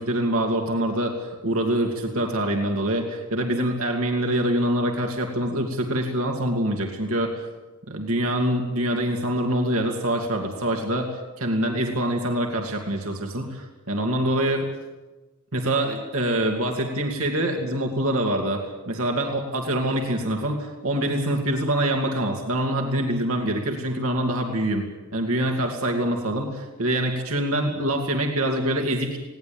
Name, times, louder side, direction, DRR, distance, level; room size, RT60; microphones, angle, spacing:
voice 1, 0.0-7.5 7.9-14.7 15.5-24.9 25.1-29.2, right 1 dB, 80° right, 2 dB, 2.6 m, -25 dB
20.0 x 18.0 x 8.8 m, 1.2 s
head